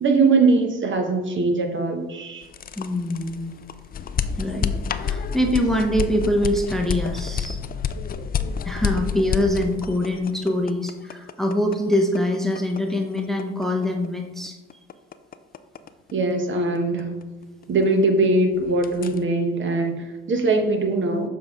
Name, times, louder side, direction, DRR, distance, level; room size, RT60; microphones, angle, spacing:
voice 1, 0.0-2.5 16.1-17.1 17.7-21.3, right 3 dB, 40° right, 4 dB, 1.1 m, -21 dB
sound 1, 2.4-18.3 18.5-19.2, left 6 dB, 30° left, 0.4 m, -29 dB
voice 2, 2.8-3.6 4.4-4.7 5.0-7.6 8.6-14.8, left 1 dB, ahead, 2 dB, 0.8 m, -24 dB
7.2 x 3.9 x 3.6 m, 1.2 s
supercardioid pair, 70°, 30 cm